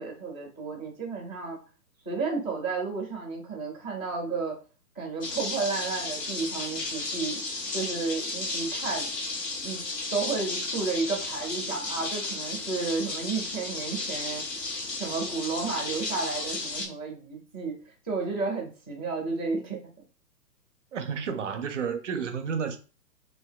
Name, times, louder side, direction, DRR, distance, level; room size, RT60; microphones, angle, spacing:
voice 1, 0.0-1.6 2.1-4.6 5.0-7.4 7.7-9.1 9.6-14.4 15.0-17.8 18.0-19.8, right 4 dB, 15° left, 0.4 m, -32 dB
sound 1, 5.2-16.9, left 3 dB, 75° left, 1.2 m, -34 dB
voice 2, 20.9-22.8, right 6 dB, 50° right, 0.5 m, -31 dB
5.8 x 2.6 x 2.2 m
hypercardioid pair, 135°, 49 cm